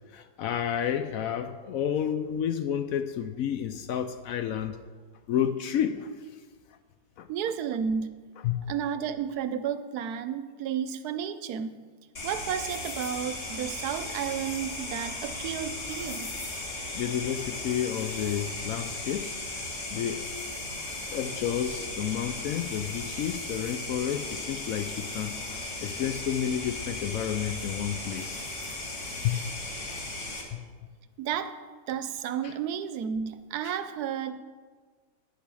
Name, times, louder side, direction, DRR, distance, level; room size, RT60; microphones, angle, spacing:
voice 1, 0.1-4.8 5.3-6.1 7.2-7.3 8.4-8.7 16.9-19.4 19.9-20.3 21.1-28.4 29.2-29.4 30.5-30.6 32.4-32.5 33.6-33.8, left 9 dB, 70° left, 10 dB, 0.9 m, -30 dB
voice 2, 7.3-8.1 8.7-11.8 12.2-16.3 31.2-31.6 31.9-34.4, right 8 dB, 75° right, 12 dB, 1.1 m, -32 dB
sound 1, 12.2-30.4, left 2 dB, 50° left, 1.8 m, -36 dB
9.6 x 6.9 x 6.2 m, 1.5 s
omnidirectional pair, 1.7 m